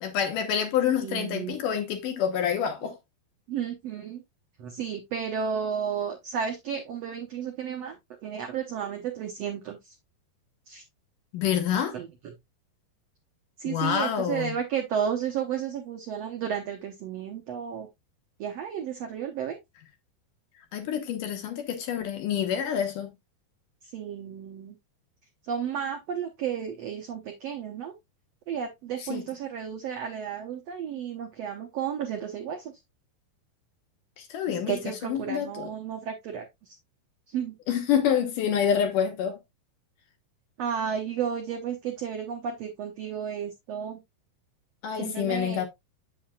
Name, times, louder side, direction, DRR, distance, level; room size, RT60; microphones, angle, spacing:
voice 1, 0.0-2.9 11.3-11.9 13.7-14.5 20.7-23.1 29.1-29.2 34.2-35.7 37.7-39.4 44.8-45.7, left 8 dB, 70° left, 2.4 m, -27 dB
voice 2, 1.0-1.6 3.5-4.2 4.6-8.0 8.2-9.9 10.7-10.8 11.9-12.3 13.6-17.9 18.4-19.6 23.9-24.8 25.5-27.9 28.5-32.7 34.7-36.4 37.3-37.6 40.6-44.0 45.0-45.6, right 8 dB, 75° right, 1.4 m, -32 dB
7.8 x 7.6 x 2.3 m
omnidirectional pair, 4.4 m